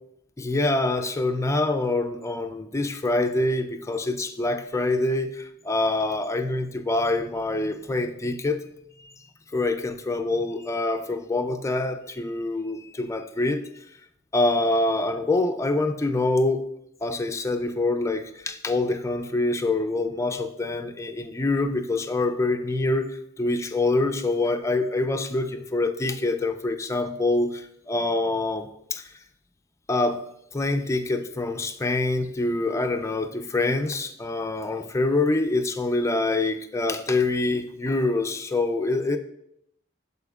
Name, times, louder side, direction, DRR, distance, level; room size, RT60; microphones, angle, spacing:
voice 1, 0.4-8.7 9.0-9.1 9.5-13.7 14.3-16.6 17.0-29.1 29.9-30.2 30.5-39.2, left 2 dB, 15° left, 7 dB, 0.4 m, -25 dB
12.0 x 4.2 x 2.4 m, 0.75 s
head